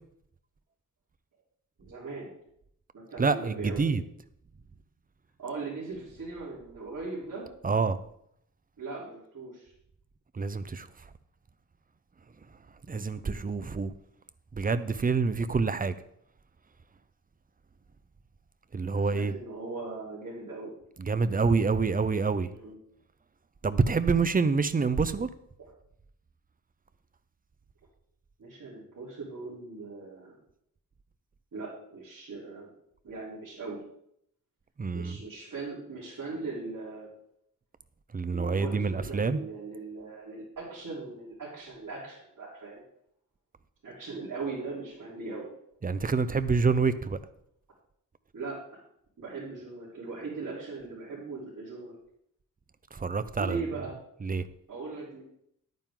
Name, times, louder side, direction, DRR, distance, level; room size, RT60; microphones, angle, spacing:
voice 1, 1.8-2.3 2.9-3.8 5.4-7.5 8.8-9.7 18.9-20.7 22.5-22.8 28.4-30.4 31.5-32.7 33.0-33.8 34.9-37.1 38.2-42.8 43.8-45.5 48.3-48.6 49.2-51.9 53.4-53.9 54.7-55.2, right 3 dB, 65° right, -9 dB, 3.8 m, -39 dB
voice 2, 3.2-4.0 7.6-8.0 10.3-10.9 12.9-13.9 14.5-15.9 18.7-19.3 21.0-22.5 23.6-25.3 34.8-35.2 38.1-39.4 45.8-47.2 52.9-53.6 54.2-54.4, right 4 dB, 25° right, 13 dB, 0.5 m, -27 dB
10.5 x 9.2 x 3.8 m, 0.71 s
wide cardioid pair, 130°, 34 cm